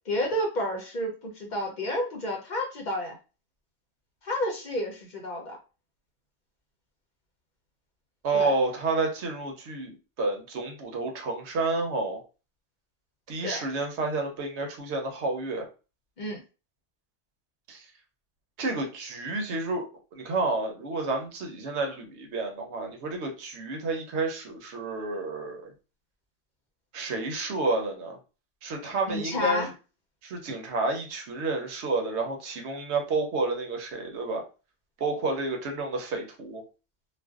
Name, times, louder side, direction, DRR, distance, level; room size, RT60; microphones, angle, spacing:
voice 1, 0.1-3.2 4.2-5.6 8.3-8.5 13.4-13.6 16.2-16.4 29.1-29.7, left 1 dB, 50° left, 1 dB, 0.7 m, -30 dB
voice 2, 8.2-12.2 13.3-15.7 17.7-17.9 18.6-19.8 20.2-25.7 26.9-28.2 28.6-29.7 30.2-34.4 35.0-36.6, right 3 dB, 85° right, 2 dB, 1.0 m, -30 dB
2.5 x 2.2 x 2.3 m, 0.32 s
omnidirectional pair, 1.1 m